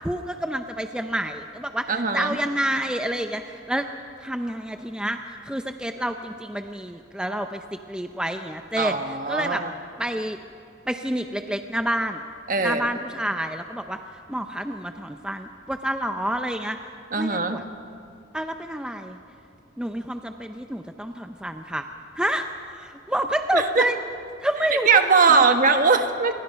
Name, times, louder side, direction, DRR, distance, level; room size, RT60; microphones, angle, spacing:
voice 1, 0.0-3.9 4.2-9.6 10.0-10.4 10.9-12.2 12.6-14.0 14.3-16.8 17.1-17.6 18.3-19.2 19.8-21.9 22.2-24.0 24.4-25.4, right 1 dB, 5° right, 6 dB, 0.6 m, -28 dB
voice 2, 1.9-2.4 8.8-9.7 12.5-12.9 17.1-17.6 23.5-23.8 24.8-26.4, right 4 dB, 45° right, 6 dB, 1.4 m, -20 dB
28.0 x 22.0 x 5.7 m, 2.5 s
head